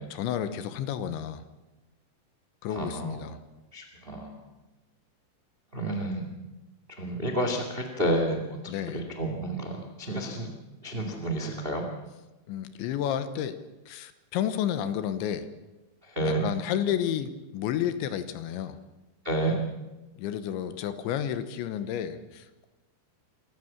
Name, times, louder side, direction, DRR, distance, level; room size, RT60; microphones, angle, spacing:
voice 1, 0.1-1.4 2.6-3.4 8.7-9.0 12.5-13.6 13.9-15.5 16.2-18.8 20.2-22.7, left 10 dB, 80° left, 11 dB, 3.4 m, -31 dB
voice 2, 2.7-3.2 3.7-4.3 5.7-6.3 7.0-10.5 10.8-11.8 16.0-16.5 19.2-19.6, right 1 dB, 80° right, 4 dB, 0.5 m, -30 dB
26.0 x 14.5 x 7.3 m, 1.1 s
omnidirectional pair, 5.3 m